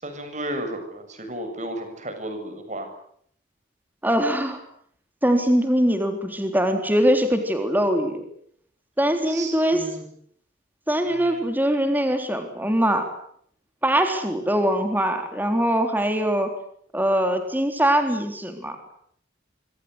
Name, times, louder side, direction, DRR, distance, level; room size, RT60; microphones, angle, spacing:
voice 1, 0.0-2.9 9.3-10.1 11.0-11.4, right 1 dB, 35° right, 7 dB, 7.2 m, -33 dB
voice 2, 4.0-4.6 5.2-8.2 9.0-9.8 10.9-13.1 13.8-16.5 16.9-18.9, equal, 10° right, 6 dB, 3.6 m, -22 dB
26.0 x 25.5 x 8.1 m, 0.65 s
head